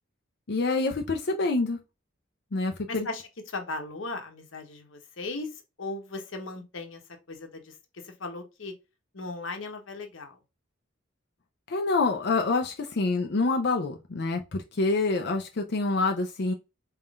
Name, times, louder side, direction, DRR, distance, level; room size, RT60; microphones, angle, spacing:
voice 1, 0.5-1.8 2.5-3.1 11.7-16.5, left 3 dB, 55° left, 0.6 m, -26 dB
voice 2, 2.9-7.0 7.3-8.7 9.1-10.4, left 2 dB, 80° left, 1.1 m, -37 dB
4.3 x 3.7 x 2.4 m
head